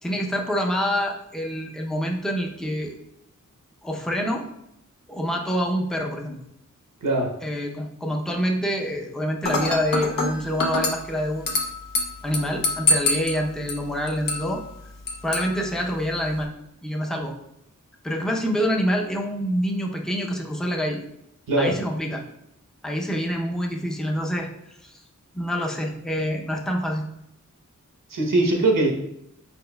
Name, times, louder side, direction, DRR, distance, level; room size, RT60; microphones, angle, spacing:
voice 1, 0.0-2.9 3.8-4.5 5.1-6.4 7.4-11.5 12.2-14.6 15.2-16.5 16.8-17.3 18.0-21.0 21.6-22.2 22.8-24.5 24.8-25.0 25.3-27.0, equal, ahead, 1 dB, 0.6 m, -26 dB
voice 2, 7.0-7.3 21.5-21.8 28.1-28.9, right 2 dB, 80° right, 0 dB, 0.9 m, -21 dB
Dishes pots and pans / Glass, 9.4-16.4, left 2 dB, 85° left, 0.7 m, -28 dB
4.3 x 4.3 x 2.2 m, 0.78 s
wide cardioid pair, 70°, 32 cm